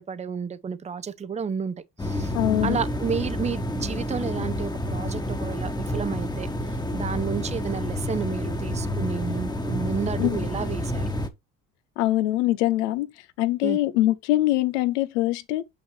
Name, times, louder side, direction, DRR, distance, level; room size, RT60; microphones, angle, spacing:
voice 1, 0.0-1.7 2.0-2.3 2.6-11.0 13.6-13.8, right 6 dB, 20° right, 0.7 m, -31 dB
sound 1, 2.0-11.3, left 1 dB, 10° left, 1.3 m, -29 dB
voice 2, 2.3-2.8 10.2-10.5 12.0-13.1 13.4-15.6, left 15 dB, 85° left, 0.9 m, -23 dB
6.3 x 5.8 x 3.3 m
supercardioid pair, 75°, 35 cm